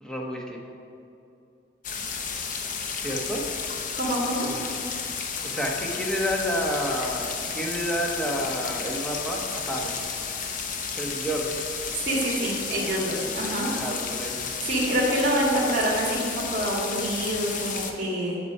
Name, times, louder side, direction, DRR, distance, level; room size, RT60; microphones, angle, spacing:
voice 1, 0.0-0.6 2.9-3.4 4.4-4.6 4.9-5.1 5.4-10.0 10.9-11.6 13.7-14.5, equal, 5° left, -1 dB, 1.1 m, -30 dB
sound 1, 1.8-17.9, left 5 dB, 45° left, 0.7 m, -32 dB
voice 2, 3.9-4.5 11.9-13.7 14.6-18.4, right 1 dB, 45° right, -4 dB, 2.1 m, -26 dB
8.3 x 6.2 x 5.5 m, 2.7 s
head